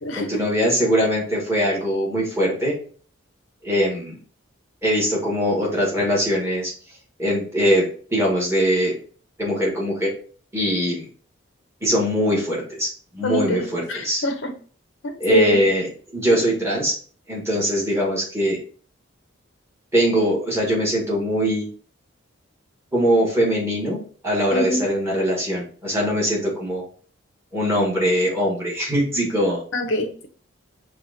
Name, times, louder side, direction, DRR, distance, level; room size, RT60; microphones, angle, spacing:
voice 1, 0.1-2.8 3.6-4.2 4.8-6.7 7.2-8.9 9.4-10.1 10.5-11.1 11.8-14.2 15.2-16.9 17.3-18.6 19.9-21.7 22.9-24.0 24.2-26.8 27.5-29.6, equal, 15° right, 1.3 m, -22 dB
voice 2, 13.2-14.5 15.0-15.6 24.5-24.9 29.7-30.3, equal, 65° left, 0.7 m, -24 dB
5.5 x 2.3 x 2.6 m
head